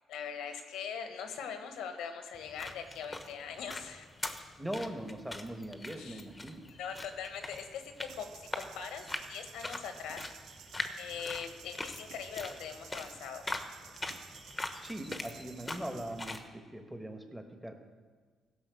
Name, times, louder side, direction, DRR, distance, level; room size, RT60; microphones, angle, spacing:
voice 1, 0.1-4.1 6.0-6.2 6.7-10.2 11.0-13.4, left 7 dB, 85° left, 7 dB, 1.3 m, -41 dB
sound 1, 2.3-16.5, left 2 dB, 20° left, 1.1 m, -43 dB
voice 2, 4.6-6.6 14.8-17.8, right 1 dB, 5° right, 4 dB, 1.5 m, -41 dB
sound 2, 8.1-16.2, right 9 dB, 80° right, 0.5 m, -54 dB
16.0 x 5.8 x 7.0 m, 1.5 s
cardioid pair, 90°, 0 cm